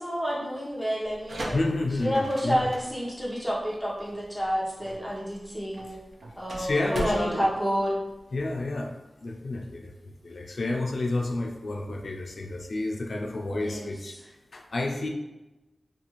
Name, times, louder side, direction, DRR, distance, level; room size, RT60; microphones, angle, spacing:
voice 1, 0.0-1.6 2.0-5.9 6.4-8.0 13.5-13.9, equal, 10° right, -5 dB, 0.8 m, -29 dB
sound 1, 1.0-8.6, right 1 dB, 80° right, 0.4 m, -39 dB
voice 2, 1.5-2.7 6.6-7.5 8.3-9.0 9.2-14.2 14.5-15.1, left 2 dB, 75° left, 1 dB, 0.3 m, -30 dB
2.5 x 2.3 x 2.9 m, 1.0 s
wide cardioid pair, 80°, 0 cm